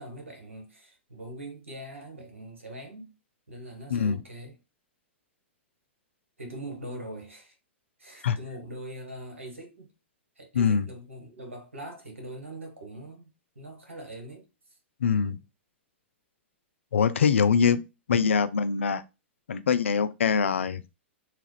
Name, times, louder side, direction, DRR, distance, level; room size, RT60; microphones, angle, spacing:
voice 1, 0.0-3.1 3.5-4.6 6.4-7.6 8.0-9.9 10.4-14.5 15.1-15.4, right 1 dB, 85° right, 1.2 m, -42 dB
voice 2, 3.9-4.2 8.2-8.4 10.5-10.9 15.0-15.4 16.9-17.8 18.1-19.0 19.5-20.8, left 6 dB, 75° left, 0.4 m, -23 dB
3.1 x 2.4 x 3.2 m
hypercardioid pair, 110°, 7 cm